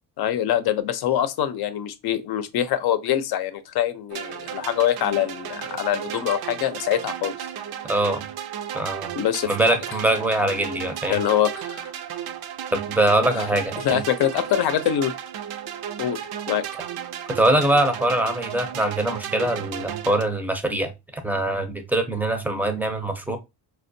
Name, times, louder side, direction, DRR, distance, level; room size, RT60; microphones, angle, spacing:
voice 1, 0.2-7.5 9.2-9.5 11.1-11.9 13.3-13.5 13.8-15.1 16.0-16.2 16.5-16.7, left 10 dB, 65° left, 0.6 m, -24 dB
sound 1, 4.1-20.2, right 9 dB, 70° right, 0.5 m, -34 dB
voice 2, 7.9-8.2 8.7-9.1 9.5-11.2 12.7-14.0 17.3-20.9 21.2-23.4, right 1 dB, 5° right, 0.5 m, -23 dB
4.3 x 2.3 x 2.6 m
cardioid pair, 130°, 40 cm